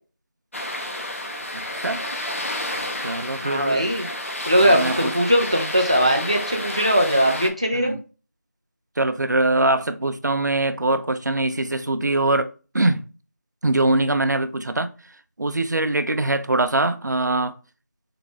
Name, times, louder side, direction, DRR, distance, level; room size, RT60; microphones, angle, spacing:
sound 1, 0.5-7.5, left 1 dB, 45° left, 0.7 m, -30 dB
voice 1, 1.5-2.0 3.0-3.8 4.7-5.1 7.7-8.0 9.0-13.0 13.6-14.9 15.4-17.5, right 2 dB, 80° right, 0.5 m, -23 dB
voice 2, 3.4-4.1 4.5-7.9, equal, 20° right, 0.4 m, -20 dB
3.8 x 2.3 x 3.4 m
figure-of-eight pair, 175°, 9 cm